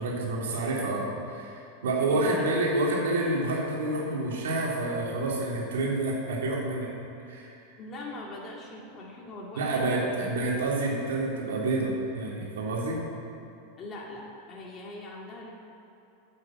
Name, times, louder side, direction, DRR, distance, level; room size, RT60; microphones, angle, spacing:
voice 1, 0.0-6.9 7.3-7.6 9.5-13.0, right 2 dB, 85° right, -4 dB, 3.3 m, -28 dB
voice 2, 2.1-2.5 7.8-10.0 13.8-15.5, left 2 dB, 30° left, -3 dB, 2.6 m, -41 dB
9.1 x 8.9 x 7.9 m, 2.8 s
hypercardioid pair, 115°, 0 cm